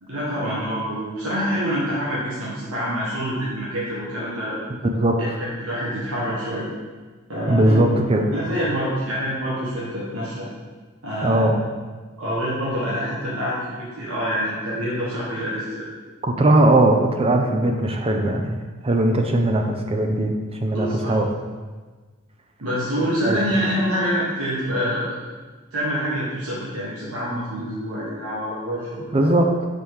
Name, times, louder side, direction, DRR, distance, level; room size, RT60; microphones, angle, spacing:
voice 1, 0.0-4.6 5.2-6.7 7.3-7.9 8.3-10.5 11.0-11.5 12.2-15.8 20.7-21.1 22.6-25.2 25.7-29.4, equal, 85° right, -8 dB, 1.4 m, -26 dB
voice 2, 4.8-5.4 7.5-8.3 11.2-11.6 16.2-18.6 18.8-21.3 23.2-23.4 29.1-29.5, right 1 dB, 30° right, 4 dB, 0.5 m, -19 dB
5.3 x 4.3 x 4.7 m, 1.4 s
head